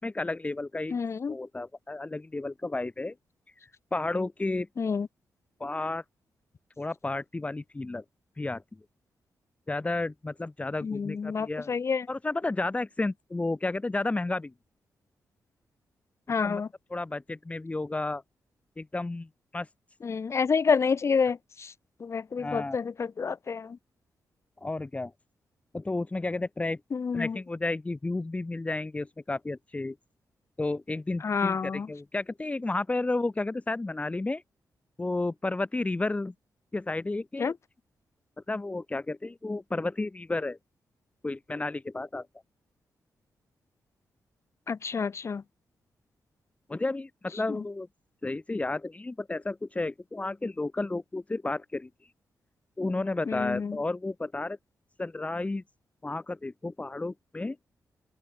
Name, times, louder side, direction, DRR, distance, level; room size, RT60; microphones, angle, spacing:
voice 1, 0.0-1.0 1.3-3.1 3.9-4.7 5.6-6.0 6.8-8.0 8.4-8.6 9.7-11.8 12.1-14.5 16.4-16.6 16.9-18.2 18.8-19.7 22.4-22.8 24.6-25.1 25.7-26.8 27.1-30.0 30.6-34.4 35.0-36.3 36.7-37.5 38.5-40.6 41.2-42.3 46.7-47.9 48.2-51.9 52.8-54.6 55.0-55.6 56.0-57.6, left 2 dB, 20° left, 3.8 m, -32 dB
voice 2, 0.9-1.3 4.8-5.1 10.8-12.1 16.3-16.7 20.0-21.7 22.0-23.8 26.9-27.4 31.2-31.9 37.4-37.5 44.7-45.4 47.5-47.6 53.3-53.8, left 5 dB, 45° left, 2.3 m, -28 dB
cardioid pair, 110°, 7 cm